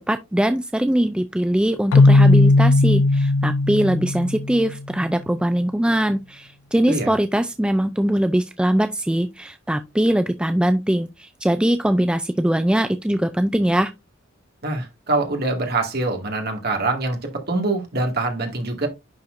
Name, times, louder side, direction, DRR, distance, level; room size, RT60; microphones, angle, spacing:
voice 1, 0.1-13.9, right 1 dB, 5° right, 0.4 m, -21 dB
Keyboard (musical), 1.9-4.8, left 2 dB, 80° left, 0.4 m, -16 dB
voice 2, 14.6-18.9, right 2 dB, 50° right, 2.0 m, -24 dB
10.5 x 4.4 x 2.5 m
head